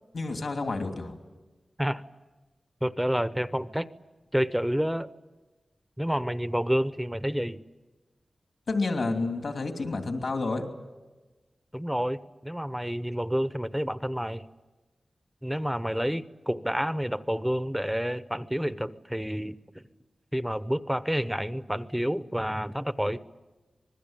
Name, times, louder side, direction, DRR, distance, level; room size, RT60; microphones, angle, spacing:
voice 1, 0.1-1.2 8.7-10.6, left 3 dB, 65° left, 4 dB, 2.8 m, -29 dB
voice 2, 2.8-3.9 4.3-5.1 6.0-7.6 11.7-14.4 15.4-19.8 20.3-23.2, equal, 5° right, 13 dB, 0.9 m, -29 dB
26.0 x 21.0 x 9.0 m, 1.2 s
wide cardioid pair, 75°, 0 cm